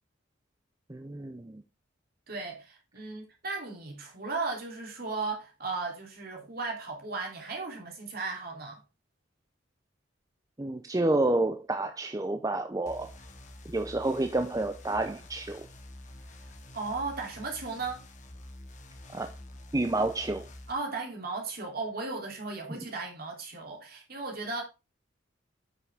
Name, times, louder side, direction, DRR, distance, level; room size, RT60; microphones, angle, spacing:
voice 1, 0.9-1.6 10.6-13.1 13.7-15.7 19.1-19.3 19.7-20.5 22.7-22.8, right 2 dB, 15° right, 0.5 m, -29 dB
voice 2, 2.3-8.8 16.7-18.0 20.7-24.6, right 3 dB, 50° right, 3.0 m, -36 dB
sound 1, 12.9-20.7, left 1 dB, 35° left, 1.3 m, -48 dB
9.4 x 5.9 x 3.5 m
head